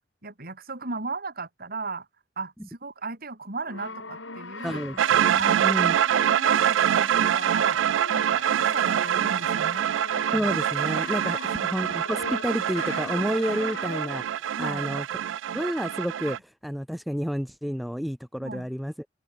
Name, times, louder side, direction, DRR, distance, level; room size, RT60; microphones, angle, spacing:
voice 1, 0.2-2.1 2.4-4.8 5.4-9.9 11.2-11.6 14.6-14.8 18.4-18.7, right 3 dB, 55° right, 4.4 m, -36 dB
Brass instrument, 3.6-14.4, left 3 dB, 85° left, 7.2 m, -40 dB
voice 2, 4.6-6.0 10.3-15.0 15.5-16.4 16.6-18.9, equal, ahead, 0.3 m, -30 dB
sound 1, 5.0-16.4, right 10 dB, 75° right, 0.3 m, -25 dB
open air
head